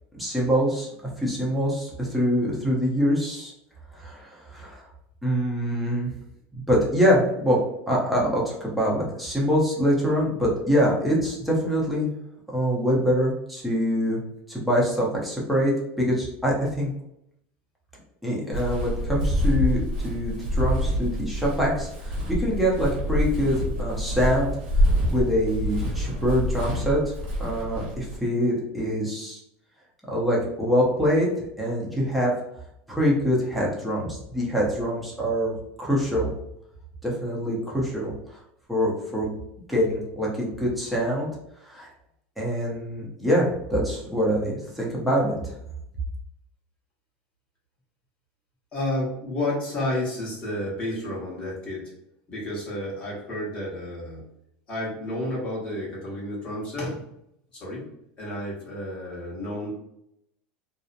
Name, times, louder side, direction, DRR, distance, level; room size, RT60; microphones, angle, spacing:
voice 1, 0.1-0.9 1.2-3.5 4.0-4.8 5.2-6.1 6.5-7.6 7.9-12.1 12.5-14.2 14.5-15.7 16.0-16.9 18.2-24.5 24.8-27.1 27.4-29.4 30.1-31.3 31.6-32.3 32.9-35.5 35.8-36.3 37.0-38.1 38.7-39.3 39.7-41.3 41.7-41.9 42.4-45.6, equal, ahead, -5 dB, 0.7 m, -24 dB
Walk footsteps, 18.5-28.2, equal, 90° right, 0.9 m, -26 dB
voice 2, 48.7-51.9 52.3-54.3 54.7-57.0 57.5-57.9 58.2-59.7, left 1 dB, 30° left, -5 dB, 1.1 m, -31 dB
2.7 x 2.0 x 2.5 m, 0.78 s
supercardioid pair, 150°, 4 cm